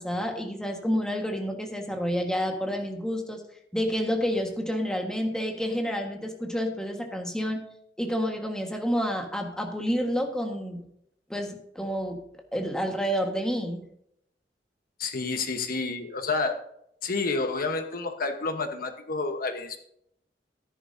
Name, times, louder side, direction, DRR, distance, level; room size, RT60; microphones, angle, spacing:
voice 1, 0.0-3.4 3.7-7.6 8.0-10.8 11.3-12.2 12.5-13.8, equal, 5° left, 2 dB, 1.5 m, -29 dB
voice 2, 15.0-16.6 17.0-19.8, left 3 dB, 55° left, 6 dB, 1.1 m, -29 dB
14.0 x 11.0 x 2.7 m, 0.74 s
head